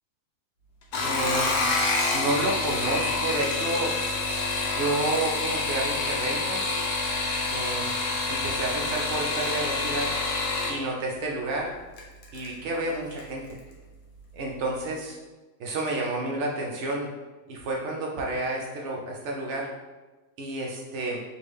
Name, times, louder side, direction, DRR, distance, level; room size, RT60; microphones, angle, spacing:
sound 1, 0.8-10.8 12.0-12.5 12.9-13.3 13.6-13.7, left 3 dB, 80° left, 1.2 m, -27 dB
voice 1, 1.0-1.6 2.1-3.9 4.7-6.6 7.5-7.9 8.3-10.1 10.7-11.7 12.3-13.4 14.3-15.2 15.6-17.1 17.5-19.7 20.4-21.2, right 2 dB, 75° right, -1 dB, 0.6 m, -30 dB
3.6 x 2.3 x 3.2 m, 1.2 s
omnidirectional pair, 1.7 m